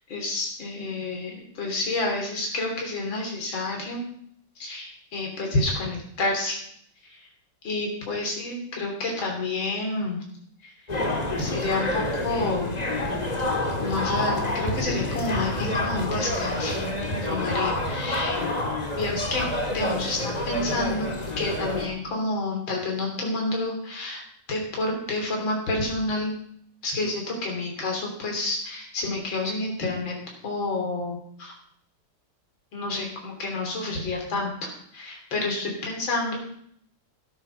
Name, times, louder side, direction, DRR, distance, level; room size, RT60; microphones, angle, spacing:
voice 1, 0.1-4.0 4.6-6.6 7.1-7.2 7.6-10.2 10.6-10.7 11.4-12.7 13.8-16.8 17.2-18.4 19.0-24.2 24.5-26.3 26.8-30.1 30.4-31.5 32.7-36.5, left 2 dB, 60° left, 0 dB, 4.0 m, -29 dB
sound 1, 10.9-21.9, left 1 dB, 20° left, 1.7 m, -28 dB
13.0 x 9.4 x 6.6 m, 0.66 s
omnidirectional pair, 2.4 m